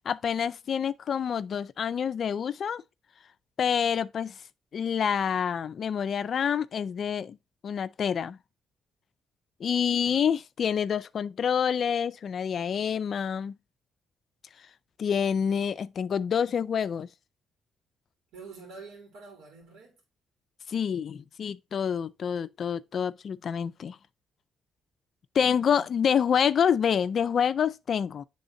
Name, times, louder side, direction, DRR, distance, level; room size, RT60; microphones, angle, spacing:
voice 1, 0.1-2.8 3.6-4.3 4.7-7.4 7.6-8.4 9.6-13.5 15.0-17.1 20.7-24.0 25.3-28.2, left 7 dB, 55° left, 0.4 m, -27 dB
voice 2, 18.3-20.0 25.4-25.8, right 4 dB, 90° right, 2.5 m, -48 dB
10.0 x 3.5 x 2.6 m
cardioid pair, 90°, 0 cm